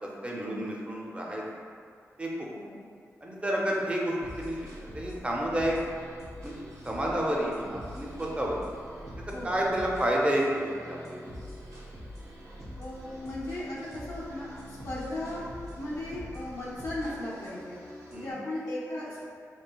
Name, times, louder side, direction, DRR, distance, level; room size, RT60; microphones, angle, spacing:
voice 1, 0.2-1.4 2.2-2.5 3.2-5.8 6.4-8.6 9.4-11.2 18.1-18.4, right 1 dB, 20° right, -3 dB, 0.5 m, -30 dB
voice 2, 2.5-2.9 9.3-9.6 12.8-15.5 15.8-17.8 18.1-19.2, left 1 dB, 75° left, -8 dB, 0.5 m, -36 dB
sound 1, 4.2-18.3, equal, 60° right, 0.7 m, -44 dB
3.1 x 2.7 x 2.2 m, 2.2 s
cardioid pair, 75°, 6 cm